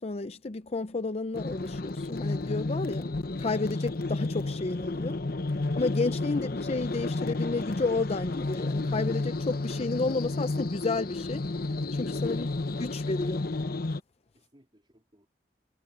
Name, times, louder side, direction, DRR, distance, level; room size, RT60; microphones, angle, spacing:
voice 1, 0.0-5.2 5.8-11.5 11.9-12.5 12.8-13.4, left 3 dB, 35° left, 0.5 m, -31 dB
sound 1, 1.3-14.0, left 2 dB, 55° left, 1.0 m, -31 dB
voice 2, 5.9-6.5 9.1-9.2 14.3-15.3, equal, 30° right, 3.6 m, -64 dB
head